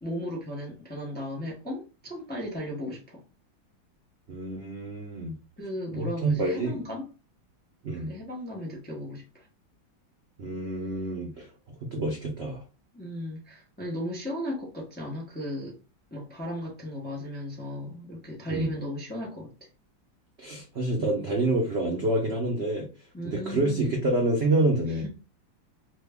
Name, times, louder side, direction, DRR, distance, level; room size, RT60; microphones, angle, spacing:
voice 1, 0.0-3.2 5.6-7.1 7.9-9.5 12.9-15.8 16.1-19.5 23.1-23.9, left 1 dB, 10° left, 0.5 m, -36 dB
voice 2, 4.3-5.3 5.9-6.8 7.8-8.1 10.4-11.5 11.8-12.6 18.5-18.7 20.4-22.9 23.2-25.0, right 2 dB, 70° right, 0.6 m, -27 dB
3.3 x 2.2 x 3.5 m
omnidirectional pair, 2.1 m